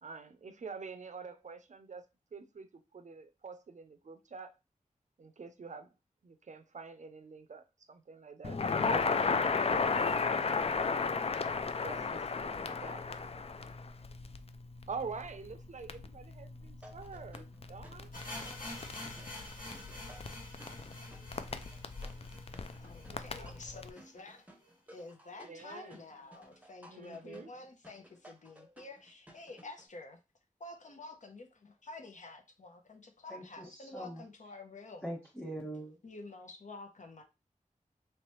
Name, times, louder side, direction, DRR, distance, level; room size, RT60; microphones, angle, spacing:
voice 1, 0.0-2.0 2.3-4.5 5.2-5.9 6.2-8.6 8.9-10.2 11.8-13.0 14.9-18.1 23.1-23.5 25.5-26.0 26.9-27.5, right 5 dB, 60° right, 0.5 m, -46 dB
Crackle, 8.4-23.9, left 4 dB, 45° left, 0.4 m, -35 dB
sound 1, 16.8-29.9, equal, 10° right, 0.7 m, -58 dB
sound 2, 18.1-24.0 24.3-24.4 24.6-24.7 25.3-25.4, left 2 dB, 85° left, 1.8 m, -47 dB
voice 2, 22.8-24.5 24.9-30.2 30.6-35.0 36.0-37.2, left 2 dB, 65° left, 0.8 m, -49 dB
voice 3, 33.3-33.6 33.9-34.2 35.0-36.0, right 1 dB, 10° left, 1.3 m, -42 dB
3.1 x 3.0 x 3.1 m
wide cardioid pair, 80°, 14 cm